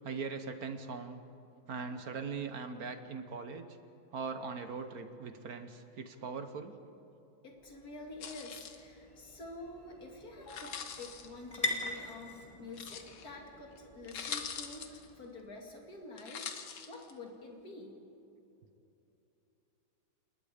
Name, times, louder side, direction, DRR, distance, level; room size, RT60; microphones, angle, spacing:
voice 1, 0.0-1.2 1.7-3.7 4.1-6.7, right 5 dB, 55° right, 9 dB, 1.4 m, -40 dB
voice 2, 7.4-16.5 16.9-18.0, left 2 dB, 50° left, 1 dB, 3.1 m, -48 dB
Train / Engine / Alarm, 7.5-15.8, equal, 25° right, 7.2 m, -62 dB
sound 1, 8.1-15.9, left 1 dB, 15° left, 2.4 m, -44 dB
sound 2, 8.2-8.8 10.4-11.3 12.7-13.3 13.8-13.9 14.0-15.1 16.2-17.1, left 7 dB, 90° left, 2.1 m, -43 dB
28.0 x 21.0 x 5.1 m, 2.8 s
omnidirectional pair, 2.1 m